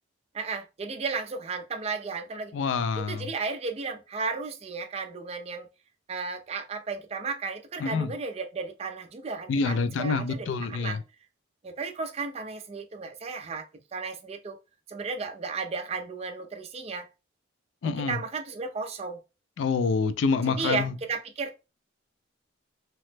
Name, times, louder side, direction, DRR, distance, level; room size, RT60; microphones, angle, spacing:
voice 1, 0.3-2.5 3.0-5.7 6.1-11.0 11.6-13.7 13.9-14.6 14.9-17.1 17.8-19.2 20.5-21.6, right 4 dB, 30° right, 0.4 m, -34 dB
voice 2, 2.5-3.3 7.8-8.1 9.5-11.0 17.8-18.2 19.6-20.9, left 4 dB, 70° left, 0.3 m, -27 dB
3.0 x 2.0 x 3.2 m
head